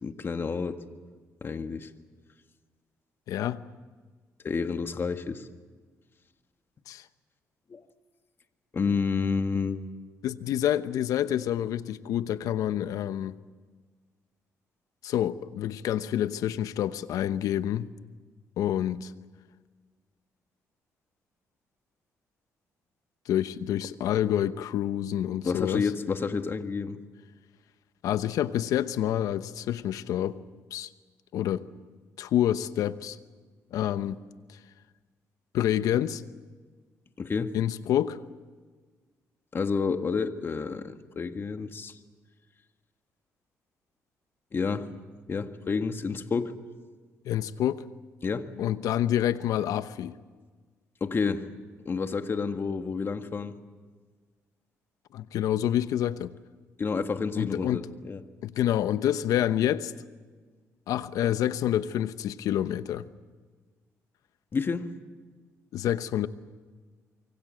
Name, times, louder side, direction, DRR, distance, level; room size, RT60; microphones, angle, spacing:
voice 1, 0.0-0.8 1.4-1.9 4.4-5.5 7.7-7.8 8.7-9.9 25.4-27.0 37.2-37.5 39.5-41.9 44.5-44.9 45.3-46.6 48.2-48.5 51.0-51.5 51.9-53.6 56.8-58.2 64.5-64.9, left 5 dB, 40° left, 1.8 m, -29 dB
voice 2, 3.3-3.6 6.9-7.0 10.2-13.4 15.0-17.9 18.6-19.1 23.3-25.9 28.0-30.4 30.7-30.9 31.3-31.6 32.2-33.2 33.7-34.2 35.5-36.2 37.5-38.2 47.2-47.8 48.6-50.2 55.1-56.3 57.4-57.9 58.4-59.9 60.9-63.1 65.7-66.3, left 11 dB, 80° left, 1.0 m, -27 dB
26.0 x 23.5 x 7.7 m
cardioid pair, 80°, 6 cm